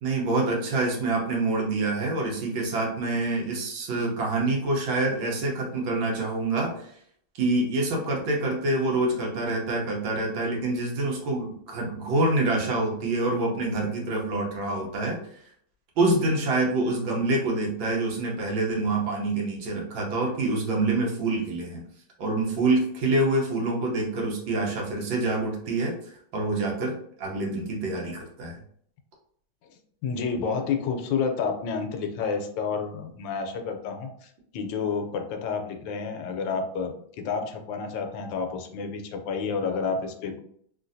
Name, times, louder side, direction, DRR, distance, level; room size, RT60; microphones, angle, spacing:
voice 1, 0.0-6.9 7.4-15.2 16.0-21.8 22.2-28.6, right 2 dB, 90° right, -1 dB, 1.7 m, -26 dB
voice 2, 30.0-40.4, left 5 dB, 80° left, 5 dB, 1.3 m, -30 dB
3.8 x 2.4 x 2.6 m, 0.65 s
omnidirectional pair, 2.1 m